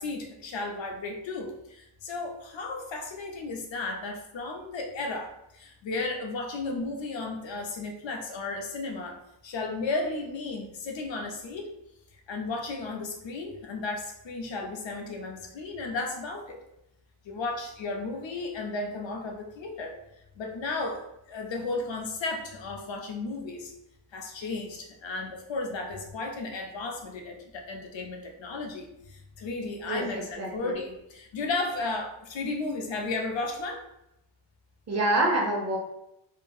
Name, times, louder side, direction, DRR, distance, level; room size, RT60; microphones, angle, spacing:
voice 1, 0.0-11.7 12.3-16.6 17.2-19.9 20.4-23.7 24.1-33.8, left 3 dB, 70° left, 2 dB, 0.6 m, -34 dB
voice 2, 29.8-30.5 34.9-35.8, right 1 dB, 35° right, -1 dB, 0.6 m, -26 dB
2.7 x 2.3 x 2.6 m, 0.84 s
wide cardioid pair, 170°, 47 cm